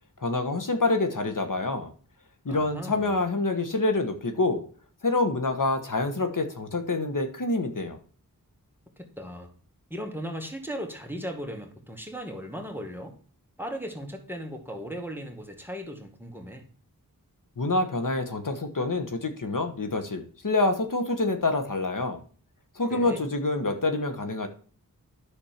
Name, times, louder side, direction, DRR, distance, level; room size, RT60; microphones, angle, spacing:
voice 1, 0.2-1.9 2.4-4.6 5.0-8.0 17.6-22.2 22.7-24.5, left 2 dB, 60° left, 7 dB, 1.4 m, -27 dB
voice 2, 2.5-3.2 9.0-9.5 9.9-13.2 13.6-16.7 22.9-23.2, equal, 5° right, 3 dB, 2.0 m, -37 dB
10.0 x 6.6 x 4.4 m, 0.43 s
wide cardioid pair, 55°, 35 cm